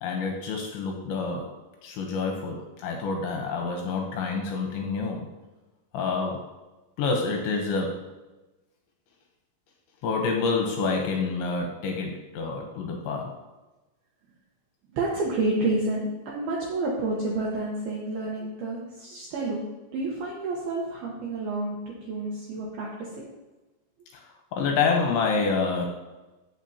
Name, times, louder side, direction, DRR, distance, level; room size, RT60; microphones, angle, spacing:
voice 1, 0.0-5.3 5.9-6.5 7.0-8.1 10.0-13.4 24.1-24.2 24.5-25.9, left 4 dB, 75° left, 2 dB, 2.9 m, -28 dB
voice 2, 14.9-19.6 19.9-23.3, right 2 dB, 80° right, -3 dB, 2.3 m, -29 dB
15.0 x 6.2 x 2.8 m, 1.1 s
omnidirectional pair, 6.0 m